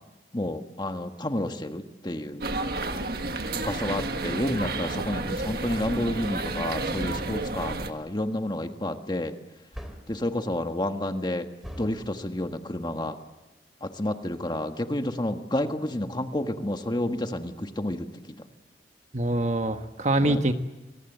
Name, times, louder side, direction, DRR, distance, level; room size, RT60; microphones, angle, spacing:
voice 1, 0.3-2.4 3.5-9.3 10.1-11.5 11.8-13.2 13.8-18.3 20.2-20.4, left 1 dB, 25° left, 6 dB, 1.6 m, -30 dB
sound 1, 2.4-7.9, right 2 dB, 60° right, 1.6 m, -31 dB
sound 2, 7.0-7.5 9.7-10.2 11.6-12.0, equal, ahead, 3.3 m, -40 dB
voice 2, 19.1-20.5, right 1 dB, 40° right, 7 dB, 1.4 m, -24 dB
29.5 x 23.0 x 8.1 m, 1.1 s
head